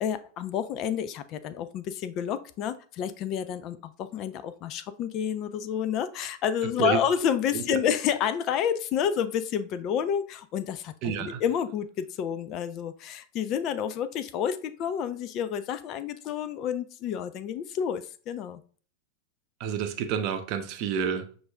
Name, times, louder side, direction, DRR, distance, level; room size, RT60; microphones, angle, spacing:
voice 1, 0.0-18.6, left 8 dB, 35° left, 0.3 m, -29 dB
voice 2, 11.0-11.4 19.6-21.4, right 8 dB, 40° right, 0.6 m, -29 dB
6.1 x 2.5 x 3.4 m
figure-of-eight pair, 90°, 0 cm